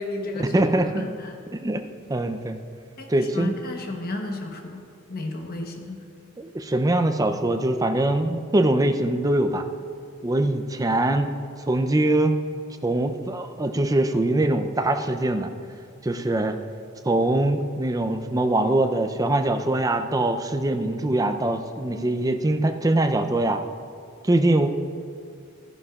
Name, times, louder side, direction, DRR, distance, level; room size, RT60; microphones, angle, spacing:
voice 1, 0.0-1.3 3.0-4.8 5.1-6.1, left 2 dB, 45° left, 3 dB, 1.0 m, -33 dB
voice 2, 0.5-1.0 1.5-1.8 2.1-2.6 3.1-3.5 6.4-9.6 10.2-11.3 11.7-12.3 12.8-15.5 16.0-16.5 17.1-23.6 24.2-24.7, right 1 dB, 15° right, 7 dB, 0.5 m, -22 dB
14.0 x 11.0 x 2.4 m, 2.3 s
head